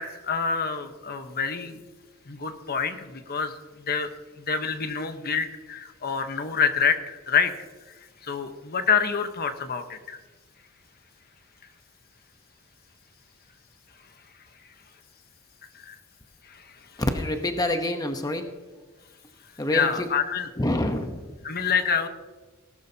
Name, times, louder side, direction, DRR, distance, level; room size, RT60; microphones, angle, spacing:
voice 1, 0.0-1.8 2.3-3.5 3.9-4.1 4.5-7.5 8.2-10.2 15.8-15.9 19.7-20.5 21.4-22.1, left 6 dB, 45° left, 8 dB, 1.0 m, -26 dB
voice 2, 17.1-18.5 19.6-20.1 20.6-21.3, left 1 dB, 20° left, 5 dB, 0.8 m, -27 dB
18.0 x 12.0 x 2.8 m, 1.3 s
head